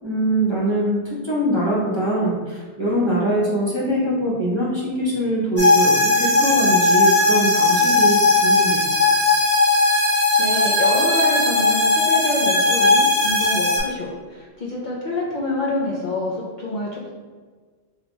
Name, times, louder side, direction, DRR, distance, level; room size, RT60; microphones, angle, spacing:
voice 1, 0.0-8.8, right 1 dB, 25° right, -6 dB, 0.9 m, -23 dB
sound 1, 5.6-13.8, left 2 dB, 10° left, 1.0 m, -17 dB
voice 2, 10.4-17.1, left 2 dB, 50° left, -5 dB, 0.7 m, -26 dB
3.3 x 2.8 x 4.0 m, 1.5 s
omnidirectional pair, 1.2 m